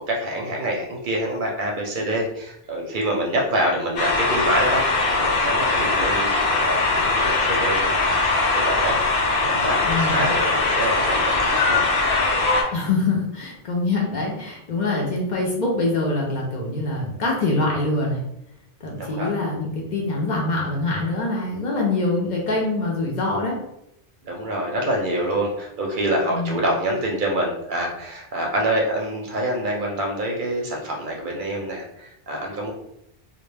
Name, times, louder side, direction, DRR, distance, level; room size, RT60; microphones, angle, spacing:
voice 1, 0.0-9.0 9.4-11.8 19.0-19.3 24.2-32.7, right 1 dB, 60° right, -1 dB, 0.6 m, -26 dB
sound 1, 4.0-12.6, left 3 dB, 85° left, 0.9 m, -21 dB
voice 2, 9.8-10.3 12.7-18.2 18.8-23.6 26.3-26.7, left 2 dB, 55° left, -2 dB, 0.6 m, -24 dB
2.1 x 2.1 x 3.2 m, 0.78 s
omnidirectional pair, 1.0 m